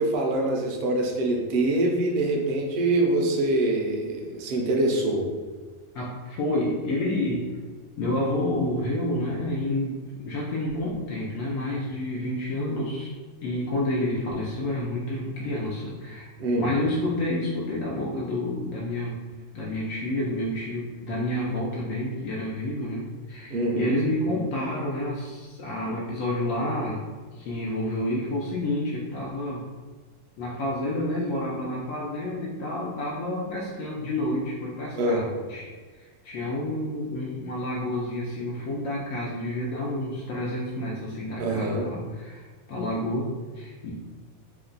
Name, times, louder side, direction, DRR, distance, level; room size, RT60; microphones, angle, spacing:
voice 1, 0.0-5.3 16.4-16.7 23.5-24.0 35.0-35.2 41.4-41.9, right 2 dB, 60° right, 0 dB, 0.6 m, -24 dB
voice 2, 5.9-7.5 8.0-13.1 13.4-16.3 16.6-27.0 27.3-29.6 30.4-35.7 36.0-43.9, left 1 dB, 75° left, -4 dB, 0.9 m, -29 dB
2.8 x 2.2 x 3.8 m, 1.4 s
omnidirectional pair, 1.4 m